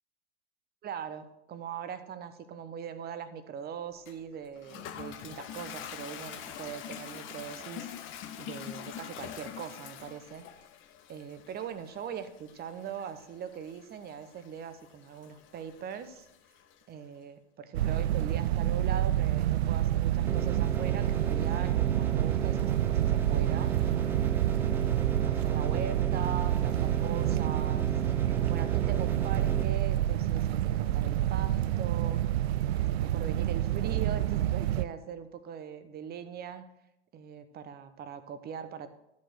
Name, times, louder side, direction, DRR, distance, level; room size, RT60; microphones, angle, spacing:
voice 1, 0.8-8.1 8.4-10.5 11.1-16.3 16.9-23.7 24.4-27.9 28.5-32.2 33.0-36.6 37.1-38.9, right 8 dB, 25° right, 11 dB, 0.9 m, -41 dB
Toilet flush, 4.1-16.8, left 9 dB, 35° left, 0.9 m, -45 dB
sound 1, 17.7-34.9, right 12 dB, 60° right, 0.6 m, -28 dB
sound 2, 20.3-29.6, right 4 dB, 5° right, 0.3 m, -37 dB
13.0 x 5.3 x 6.2 m, 0.83 s
figure-of-eight pair, 85°, 36 cm